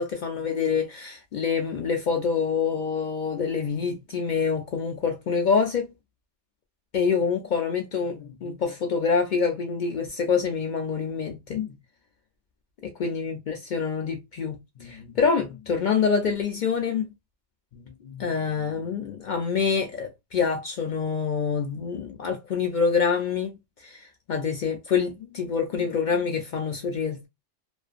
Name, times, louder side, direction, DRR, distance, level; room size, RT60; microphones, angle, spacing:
voice 1, 0.0-5.9 6.9-11.7 12.8-17.1 17.7-27.3, left 5 dB, 65° left, 0.5 m, -26 dB
2.5 x 2.4 x 2.3 m
omnidirectional pair, 1.2 m